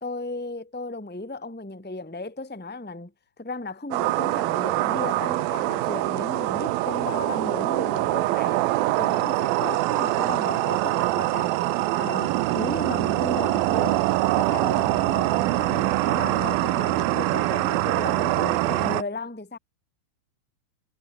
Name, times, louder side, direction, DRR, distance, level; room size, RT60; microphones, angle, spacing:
voice 1, 0.0-3.1 3.4-8.7 8.9-11.6 12.0-14.1 14.4-19.6, left 2 dB, 5° left, 2.4 m, -35 dB
sound 1, 3.9-19.0, right 17 dB, 80° right, 2.6 m, -24 dB
omnidirectional pair, 4.2 m